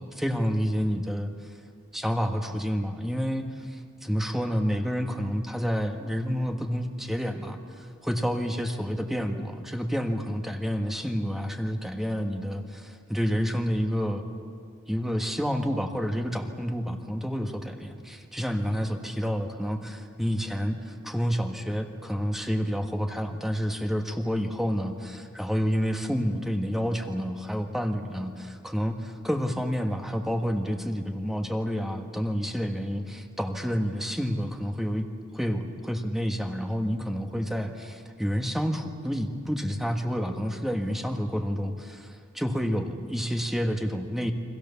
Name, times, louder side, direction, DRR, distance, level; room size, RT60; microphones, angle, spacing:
voice 1, 0.0-1.5 1.9-14.2 14.9-35.1 35.3-44.3, equal, ahead, 4 dB, 1.5 m, -29 dB
29.5 x 24.0 x 7.1 m, 2.2 s
head